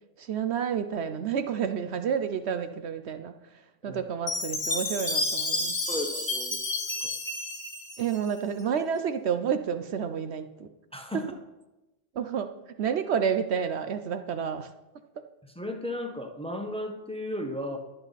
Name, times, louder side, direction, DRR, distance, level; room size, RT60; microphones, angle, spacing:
voice 1, 0.2-5.8 8.0-10.7 12.1-14.7, right 7 dB, 70° right, 9 dB, 0.9 m, -30 dB
Chime, 4.3-8.6, left 2 dB, 20° left, 2.1 m, -31 dB
voice 2, 5.9-6.6 6.9-7.1 10.9-11.3 15.5-17.8, left 1 dB, 5° left, 4 dB, 1.2 m, -35 dB
22.0 x 8.0 x 4.1 m, 1.0 s
omnidirectional pair, 1.2 m